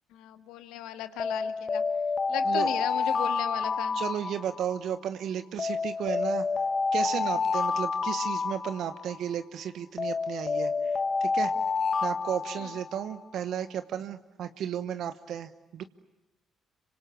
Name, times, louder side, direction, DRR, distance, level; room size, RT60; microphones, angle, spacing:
voice 1, 0.1-1.8 2.3-4.0, left 12 dB, 80° left, 9 dB, 1.8 m, -36 dB
Alarm, 1.2-4.9 5.6-9.3 10.0-13.2, left 4 dB, 40° left, 1.2 m, -29 dB
voice 2, 3.9-6.5 6.9-11.5 12.0-15.8, right 9 dB, 70° right, 10 dB, 1.0 m, -34 dB
27.0 x 25.0 x 8.9 m, 0.99 s
supercardioid pair, 55°, 0 cm